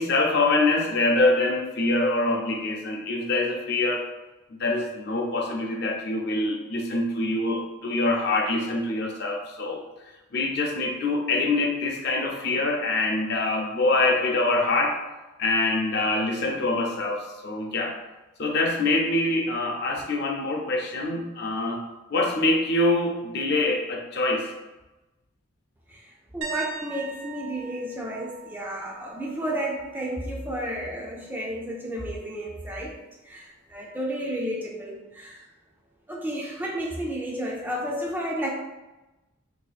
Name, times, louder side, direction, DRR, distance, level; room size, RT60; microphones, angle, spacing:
voice 1, 0.0-4.0 4.5-9.8 10.3-15.0 15.4-17.9 18.4-21.8 22.1-24.5, left 2 dB, 50° left, 1 dB, 0.5 m, -25 dB
voice 2, 25.9-33.0 33.2-35.4 36.1-38.5, equal, 10° right, -2 dB, 0.3 m, -32 dB
sound 1, 26.4-30.2 30.5-30.8 33.7-33.8, right 6 dB, 75° right, 0.6 m, -40 dB
2.8 x 2.5 x 3.9 m, 1.1 s
head